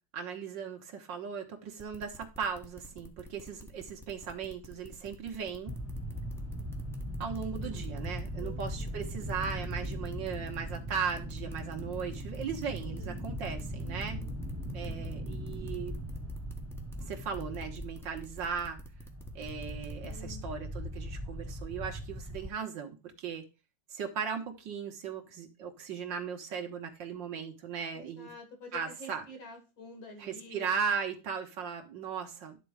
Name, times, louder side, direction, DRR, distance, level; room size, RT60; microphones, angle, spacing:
voice 1, 0.1-5.8 7.2-14.2 14.7-16.0 17.0-18.8 19.4-23.4 23.9-28.3 28.7-29.2 30.2-32.6, right 6 dB, 70° right, 2.0 m, -37 dB
sound 1, 1.8-20.1, left 1 dB, ahead, 0.9 m, -49 dB
sound 2, 5.7-22.5, equal, 20° right, 0.3 m, -39 dB
voice 2, 7.4-7.8 8.4-8.9 12.7-13.3 13.8-14.4 20.0-20.4 27.9-30.7, left 1 dB, 80° left, 3.0 m, -49 dB
11.5 x 3.8 x 4.8 m
omnidirectional pair, 2.1 m